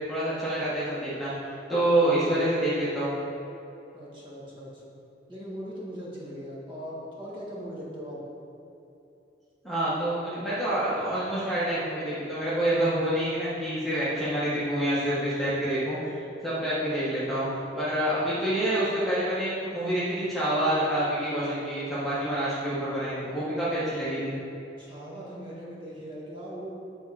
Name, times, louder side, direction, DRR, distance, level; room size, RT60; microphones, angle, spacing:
voice 1, 0.1-3.2 9.6-17.5 17.7-24.4, right 1 dB, ahead, -11 dB, 1.2 m, -27 dB
voice 2, 3.9-4.8 5.3-8.2 11.0-11.1 24.8-26.7, equal, 30° right, -6 dB, 1.5 m, -40 dB
8.1 x 3.6 x 4.7 m, 2.8 s
head